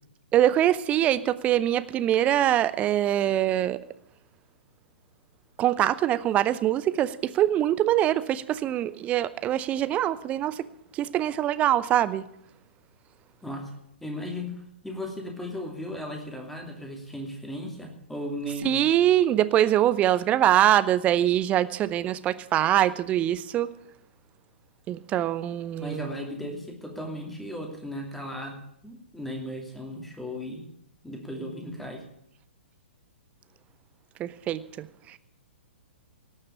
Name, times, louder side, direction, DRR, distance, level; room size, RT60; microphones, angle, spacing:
voice 1, 0.3-3.8 5.6-10.7 10.9-12.3 18.6-23.7 24.9-26.1 34.2-35.2, right 12 dB, 20° right, 15 dB, 0.7 m, -23 dB
voice 2, 14.0-18.8 25.8-30.7 31.0-32.0, left 1 dB, 5° left, 1 dB, 2.7 m, -36 dB
18.0 x 6.6 x 8.4 m, 0.73 s
figure-of-eight pair, 115°, 6 cm